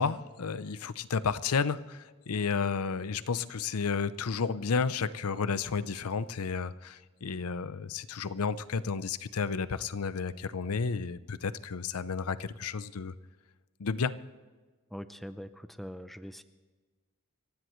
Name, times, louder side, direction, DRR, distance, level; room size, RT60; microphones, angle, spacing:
voice 1, 0.0-13.1 13.8-14.1, left 5 dB, 85° left, 15 dB, 0.6 m, -32 dB
voice 2, 14.9-16.4, equal, ahead, 11 dB, 0.5 m, -42 dB
29.0 x 15.5 x 3.2 m, 1.4 s
head